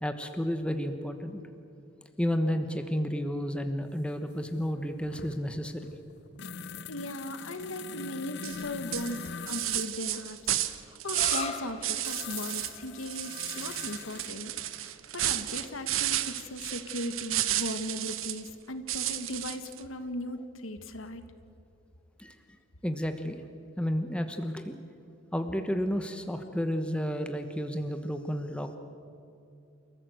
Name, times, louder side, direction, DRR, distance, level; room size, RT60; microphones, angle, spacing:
voice 1, 0.0-1.4 2.2-5.9 22.2-22.6 22.8-23.4 23.8-24.8 25.3-28.8, equal, 5° left, 7 dB, 1.1 m, -31 dB
sound 1, 4.0-4.1 4.3-10.0 12.0-14.3 16.5-16.6 18.1-18.8 19.1-19.2, left 6 dB, 55° left, 0.7 m, -43 dB
voice 2, 6.9-21.2, left 1 dB, 80° left, 9 dB, 1.5 m, -38 dB
sound 2, 8.4-8.6 8.9-11.5 11.8-12.7 13.0-18.5 18.9-19.8, right 13 dB, 80° right, 1.0 m, -32 dB
sound 3, 11.0-18.4, left 5 dB, 30° left, 1.9 m, -44 dB
28.5 x 14.5 x 8.0 m, 2.6 s
head